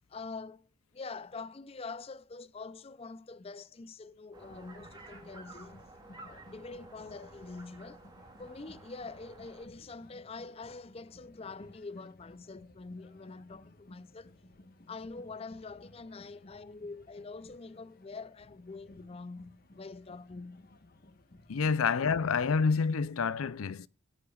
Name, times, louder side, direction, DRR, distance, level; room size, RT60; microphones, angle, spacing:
voice 1, 0.1-0.7 0.9-5.8 6.2-8.0 8.4-14.3 14.9-20.7 21.6-21.7, left 3 dB, 25° left, 0.4 m, -45 dB
sound 1, 4.3-9.7, right 2 dB, 20° right, 2.0 m, -53 dB
sound 2, 4.4-22.5, left 1 dB, 45° left, 1.3 m, -57 dB
voice 2, 21.5-23.9, left 5 dB, 80° left, 0.5 m, -28 dB
16.5 x 9.6 x 2.4 m
head